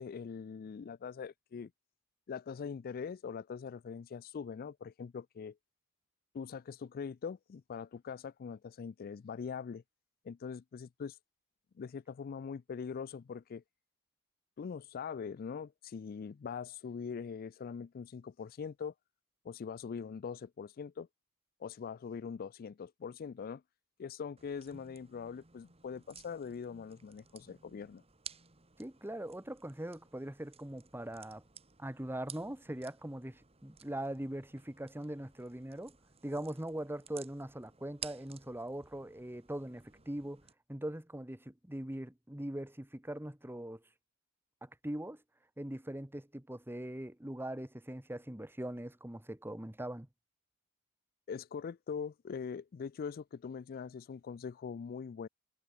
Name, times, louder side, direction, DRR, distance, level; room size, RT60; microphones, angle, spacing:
voice 1, 0.0-1.7 2.3-5.6 6.3-9.8 10.2-11.2 11.8-13.6 14.6-18.9 19.4-21.1 21.6-23.6 24.0-28.0 51.3-55.3, left 6 dB, 45° left, 0.3 m, -42 dB
sound 1, 24.4-40.5, right 7 dB, 30° right, 2.4 m, -55 dB
voice 2, 28.8-31.4 31.8-36.0 36.2-40.4 40.7-43.8 44.6-45.2 45.6-50.1, right 1 dB, 10° right, 1.2 m, -41 dB
head